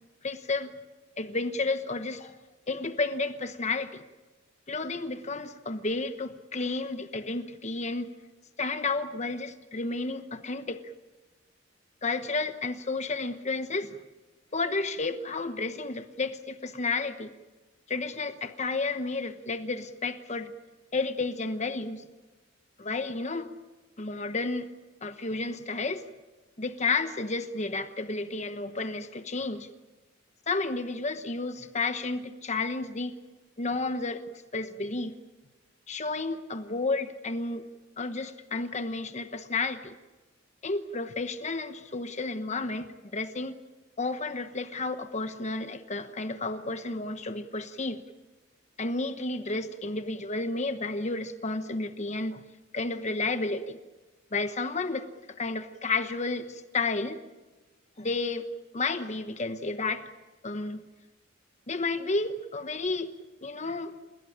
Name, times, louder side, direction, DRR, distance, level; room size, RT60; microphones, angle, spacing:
voice 1, 0.2-0.7 1.2-2.3 2.7-4.0 4.7-8.1 8.6-10.9 12.0-14.0 14.5-17.3 17.9-20.5 20.9-22.0 22.8-23.5 24.0-24.7 25.0-26.0 26.6-29.7 30.5-33.1 33.6-34.2 34.5-35.1 35.9-37.6 38.0-39.9 40.6-43.5 44.0-48.0 48.8-52.4 52.7-53.8 54.3-55.1 55.4-57.2 58.0-58.5 58.7-60.0 60.4-60.8 61.7-63.1 63.4-63.9, left 3 dB, 35° left, 9 dB, 1.1 m, -31 dB
29.5 x 16.5 x 8.8 m, 1.2 s
head